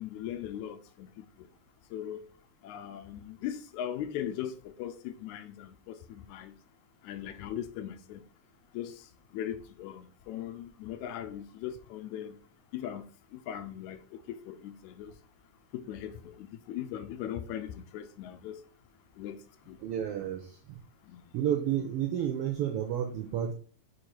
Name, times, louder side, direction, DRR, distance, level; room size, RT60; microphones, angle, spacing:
voice 1, 0.0-1.5 1.9-2.2 2.6-6.5 7.0-8.2 8.7-12.4 12.7-13.1 13.3-15.1 15.7-18.6 19.2-19.4 19.7-19.8 21.0-21.2, left 10 dB, 80° left, 2.0 m, -39 dB
voice 2, 19.8-20.8 21.3-23.5, right 10 dB, 80° right, 1.3 m, -31 dB
5.2 x 4.7 x 4.4 m
omnidirectional pair, 3.4 m